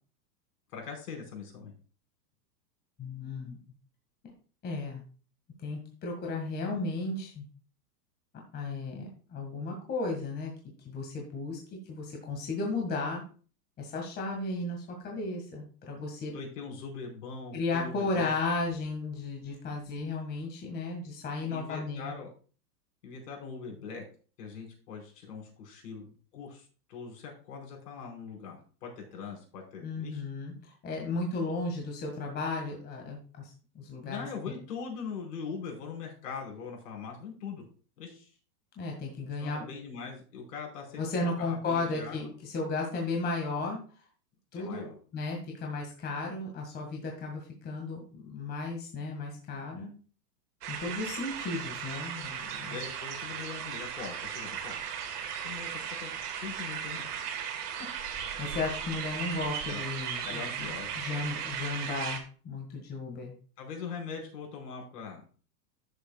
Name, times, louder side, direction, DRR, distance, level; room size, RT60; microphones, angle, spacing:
voice 1, 0.7-1.7 16.3-18.3 21.5-22.3 23.0-24.0 24.4-30.2 31.4-31.5 34.0-37.7 38.0-38.3 39.4-42.3 44.5-44.9 52.7-54.8 55.4-55.7 56.0-57.2 59.7-59.9 60.2-61.5 63.6-65.2, left 5 dB, 70° left, 1 dB, 4.9 m, -42 dB
voice 2, 3.0-3.6 4.6-5.0 5.6-7.5 8.5-10.5 10.8-11.6 11.9-13.2 13.8-16.3 17.5-22.1 29.8-33.5 33.8-34.3 38.8-39.6 41.0-43.8 44.5-44.9 45.1-49.9 50.7-52.8 58.4-63.3, left 3 dB, 20° left, 1 dB, 1.9 m, -34 dB
sound 1, 50.6-62.2, right 8 dB, 70° right, 2.1 m, -37 dB
12.5 x 7.2 x 2.3 m, 0.39 s
supercardioid pair, 145°, 49 cm